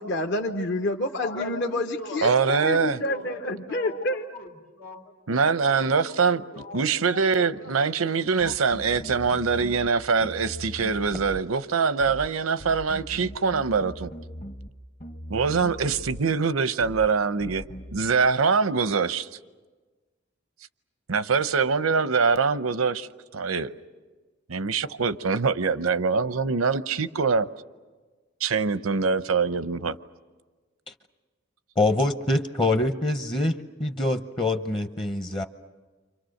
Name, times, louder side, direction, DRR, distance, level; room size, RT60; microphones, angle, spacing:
voice 1, 0.0-2.3 2.6-4.2, left 1 dB, 60° left, 1.0 m, -28 dB
voice 2, 1.2-8.1 8.4-8.5, left 2 dB, 90° left, 2.6 m, -40 dB
voice 3, 2.2-3.0 5.3-6.4 6.7-14.1 15.3-17.6 17.9-19.3 21.1-23.1 23.3-23.7 24.5-27.5 28.4-30.0, right 5 dB, 85° right, 0.7 m, -24 dB
sound 1, 8.4-9.9 10.2-11.5 12.0-12.3 12.6-14.7 15.0-16.3 16.8-17.1 17.4-18.0, equal, 40° left, 1.1 m, -40 dB
voice 4, 31.8-35.4, left 2 dB, 25° left, 0.8 m, -25 dB
30.0 x 26.0 x 6.5 m
head